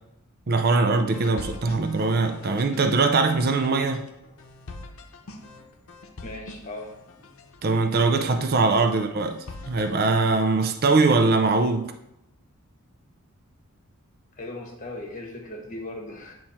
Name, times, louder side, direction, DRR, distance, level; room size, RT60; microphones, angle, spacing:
voice 1, 0.5-4.0 7.6-9.4 9.7-11.9, right 3 dB, 45° right, 0.5 m, -22 dB
sound 1, 1.1-9.9, left 2 dB, 75° left, 0.7 m, -44 dB
voice 2, 6.2-6.9 14.4-16.3, left 2 dB, 35° left, 1.3 m, -37 dB
9.2 x 3.1 x 4.2 m
head